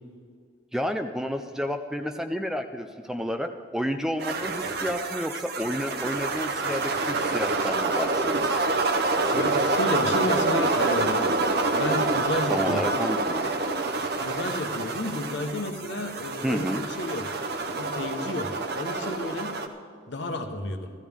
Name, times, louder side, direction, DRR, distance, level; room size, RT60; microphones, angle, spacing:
voice 1, 0.7-8.6 12.5-13.5 16.4-16.8, equal, 5° right, 7 dB, 0.4 m, -31 dB
sound 1, 4.2-19.7, right 3 dB, 55° right, 0.8 m, -27 dB
voice 2, 9.3-11.3 11.7-12.9 14.2-17.3 17.7-19.6 20.1-20.9, left 1 dB, 60° left, 5 dB, 1.1 m, -31 dB
15.5 x 13.5 x 3.6 m, 2.2 s
head